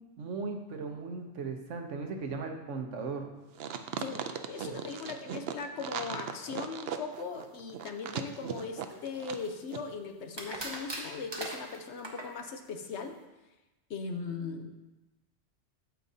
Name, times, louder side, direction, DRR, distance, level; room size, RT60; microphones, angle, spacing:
voice 1, 0.2-3.3, right 4 dB, 85° right, 4 dB, 1.2 m, -37 dB
sound 1, 3.6-9.5 9.7-9.8, right 8 dB, 65° right, 0.7 m, -38 dB
voice 2, 4.0-13.2 13.9-14.7, left 5 dB, 70° left, 6 dB, 1.0 m, -39 dB
sound 2, 8.9-9.7 10.3-12.3, right 1 dB, 25° right, 0.9 m, -40 dB
8.9 x 7.9 x 2.7 m, 1.1 s
omnidirectional pair, 1.2 m